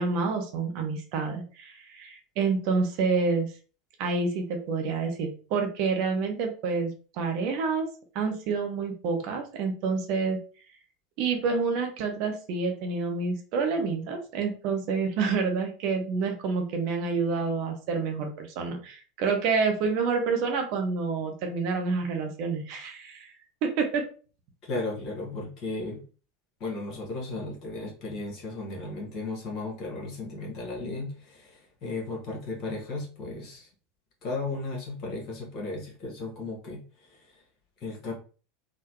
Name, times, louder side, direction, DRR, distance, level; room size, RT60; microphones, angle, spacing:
voice 1, 0.0-3.5 4.0-7.9 8.1-10.4 11.2-23.3 23.6-24.0, right 4 dB, 50° right, 4 dB, 0.7 m, -28 dB
voice 2, 24.6-26.0 26.6-33.7 34.2-37.4 37.8-38.1, left 3 dB, 45° left, -1 dB, 1.3 m, -35 dB
3.7 x 2.2 x 3.0 m, 0.37 s
figure-of-eight pair, 80°, 0 cm